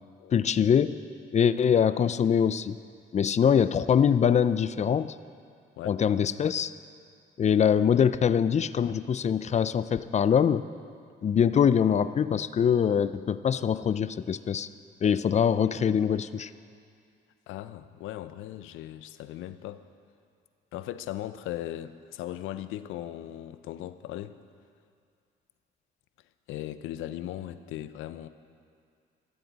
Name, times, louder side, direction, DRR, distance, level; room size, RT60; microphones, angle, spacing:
voice 1, 0.3-1.0 1.3-2.8 3.1-5.2 5.9-6.7 7.4-10.7 11.2-14.7 15.0-16.5, left 8 dB, 35° left, 15 dB, 0.4 m, -23 dB
voice 2, 17.5-19.8 20.7-24.4 26.5-28.3, left 13 dB, 90° left, 13 dB, 0.5 m, -38 dB
14.0 x 13.5 x 4.0 m, 2.3 s
cardioid pair, 90°, 20 cm